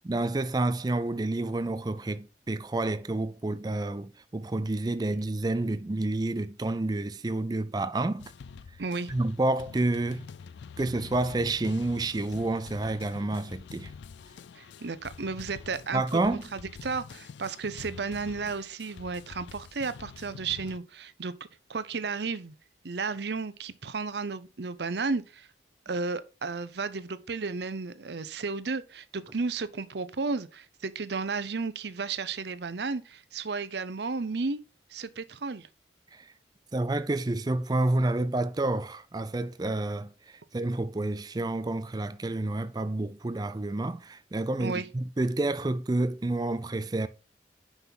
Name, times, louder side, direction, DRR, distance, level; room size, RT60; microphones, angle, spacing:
voice 1, 0.0-8.3 9.1-10.3 10.8-13.9 15.9-16.4 36.1-36.3 36.7-47.1, right 2 dB, 20° right, 0.4 m, -29 dB
sound 1, 8.2-20.8, left 5 dB, 80° left, 0.4 m, -46 dB
voice 2, 8.8-9.1 14.6-16.0 16.5-21.3 21.7-22.5 22.8-25.5 25.9-34.6 34.9-35.7 44.6-44.9, right 4 dB, 70° right, 0.7 m, -33 dB
5.7 x 5.6 x 5.8 m
head